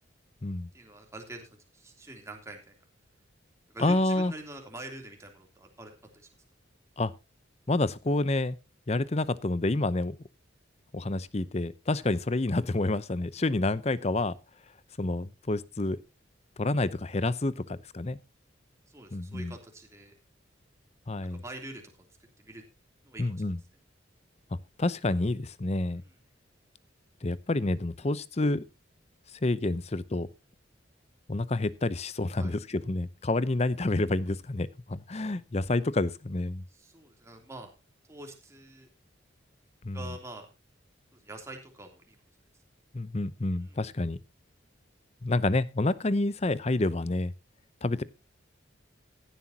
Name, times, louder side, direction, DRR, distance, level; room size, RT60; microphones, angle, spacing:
voice 1, 0.7-2.8 3.7-6.3 18.9-20.1 21.3-21.8 22.4-22.6 23.0-23.4 26.0-26.1 32.4-32.5 36.7-37.7 38.1-38.9 39.9-40.5 41.1-42.2 43.6-43.8, right 2 dB, 15° right, 3.1 m, -45 dB
voice 2, 3.8-4.3 7.0-7.1 7.7-8.6 8.9-10.2 10.9-14.3 15.0-16.0 16.6-18.2 19.1-19.5 21.1-21.4 23.2-23.6 24.8-26.0 27.2-28.6 29.4-30.3 31.3-36.6 39.8-40.2 42.9-44.2 45.2-47.3 47.8-48.0, left 2 dB, 35° left, 0.7 m, -28 dB
16.0 x 11.5 x 2.8 m
head